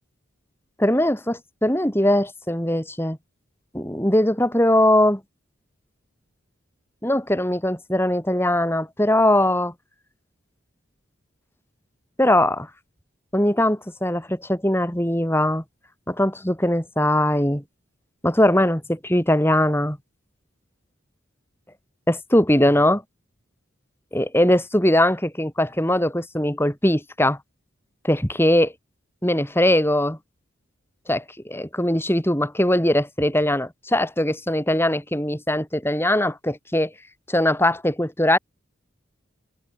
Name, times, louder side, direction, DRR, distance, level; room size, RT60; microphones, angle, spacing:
voice 1, 0.8-3.2 3.7-5.2 7.0-9.7 12.2-12.7 13.3-15.6 16.1-17.6 18.2-20.0 22.1-23.0 24.1-27.4 28.0-28.7 29.2-30.2 31.1-36.9 37.3-38.4, left 1 dB, 10° left, 6.9 m, -20 dB
head